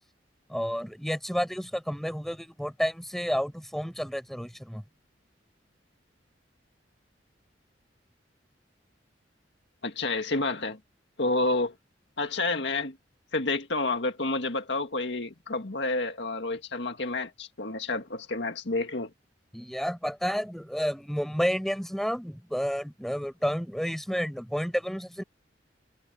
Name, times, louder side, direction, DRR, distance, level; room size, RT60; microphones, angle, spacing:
voice 1, 0.5-4.8 19.5-25.2, equal, ahead, 7.4 m, -30 dB
voice 2, 9.8-10.8 11.2-11.7 12.2-13.0 13.3-19.1, left 2 dB, 70° left, 1.9 m, -29 dB
head